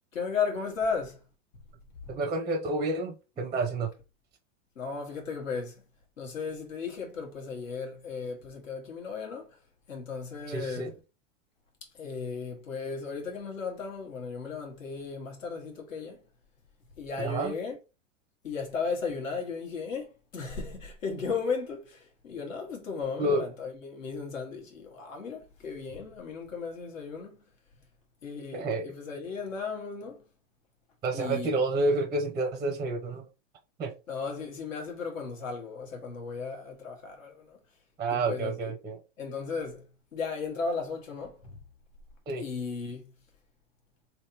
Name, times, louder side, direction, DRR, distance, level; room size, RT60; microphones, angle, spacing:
voice 1, 0.1-1.2 2.0-2.1 4.7-5.8 6.2-9.5 9.9-10.9 12.0-16.2 17.0-17.8 18.4-27.4 28.2-30.2 31.1-31.5 34.1-37.6 38.1-38.5 39.2-39.8 40.1-41.4 42.4-43.0, left 5 dB, 85° left, 1.6 m, -35 dB
voice 2, 2.1-3.9 10.5-10.9 17.2-17.6 23.2-23.4 28.5-28.9 31.0-33.3 33.8-33.9 38.0-39.0 42.3-42.4, right 2 dB, 10° right, 0.5 m, -29 dB
3.4 x 2.9 x 2.8 m
hypercardioid pair, 130°, 38 cm